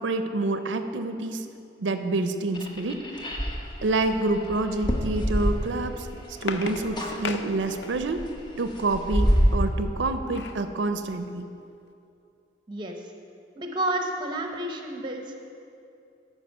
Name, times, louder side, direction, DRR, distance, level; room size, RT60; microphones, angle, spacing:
voice 1, 0.0-1.5 1.8-3.1 3.8-8.2 8.6-11.5, right 2 dB, 85° right, 8 dB, 0.5 m, -28 dB
sound 1, 2.5-6.2 6.5-7.2 7.5-9.6, equal, 25° left, 0.9 m, -26 dB
sound 2, 5.8-8.3 9.8-10.7 11.2-11.3 11.5-11.8, left 4 dB, 75° left, 0.5 m, -36 dB
voice 2, 12.7-13.0 13.6-15.5, right 1 dB, 25° right, 3 dB, 0.8 m, -31 dB
12.5 x 5.0 x 5.4 m, 2.5 s
head